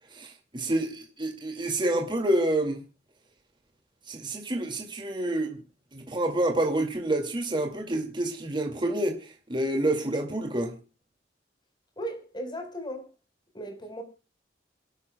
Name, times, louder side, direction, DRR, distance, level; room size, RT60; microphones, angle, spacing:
voice 1, 0.1-2.8 4.1-5.6 5.9-10.8, right 1 dB, 25° right, 2.2 m, -28 dB
voice 2, 12.0-13.1 13.5-14.0, right 1 dB, 25° left, 4.4 m, -36 dB
27.5 x 12.0 x 2.2 m
head